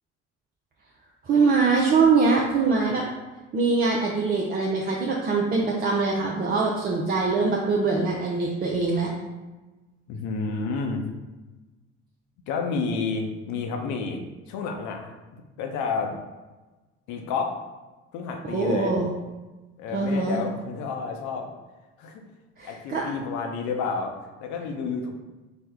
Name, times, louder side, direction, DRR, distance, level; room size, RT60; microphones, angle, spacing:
voice 1, 1.2-3.0 3.5-9.1 18.5-19.1 19.9-20.4 22.6-23.1, right 4 dB, 25° right, -2 dB, 0.5 m, -23 dB
voice 2, 10.1-11.0 12.5-14.2 14.5-16.2 17.1-17.5 18.1-19.0 19.8-21.5 22.0-22.2 22.6-24.1 24.4-25.1, left 4 dB, 50° left, 3 dB, 0.7 m, -30 dB
4.3 x 2.1 x 3.4 m, 1.2 s
figure-of-eight pair, 55°, 36 cm